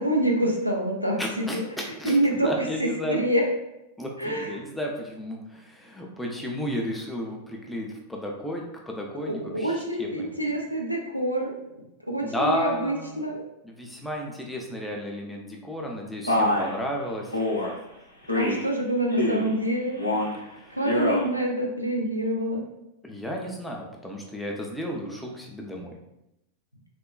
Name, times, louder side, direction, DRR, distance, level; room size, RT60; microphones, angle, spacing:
voice 1, 0.0-1.6 2.0-3.4 4.2-4.5 9.2-11.5 12.1-13.4 18.4-22.6, right 1 dB, 90° left, 0 dB, 0.4 m, -27 dB
voice 2, 1.2-3.2 4.0-10.3 12.2-13.2 13.6-17.4 20.6-20.8 23.0-25.9, equal, 5° left, -1 dB, 0.5 m, -33 dB
Male speech man speaking, 16.3-16.7 17.3-17.7 18.3-18.7 19.1-19.5 19.9-20.4 20.8-21.3, left 1 dB, 90° right, 0.5 m, -25 dB
3.5 x 2.2 x 2.2 m, 0.88 s
figure-of-eight pair, 90°, 0 cm